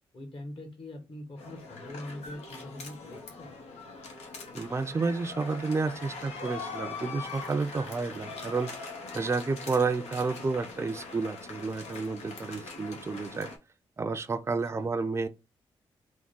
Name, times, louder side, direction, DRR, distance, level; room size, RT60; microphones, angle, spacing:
voice 1, 0.1-3.5 14.4-14.9, left 1 dB, 55° left, 1.4 m, -43 dB
sound 1, 1.4-13.6, left 3 dB, 85° left, 0.9 m, -42 dB
voice 2, 4.5-8.7 9.1-13.5 14.0-15.3, right 4 dB, 25° right, 0.4 m, -30 dB
3.6 x 2.1 x 3.7 m
supercardioid pair, 55°, 11 cm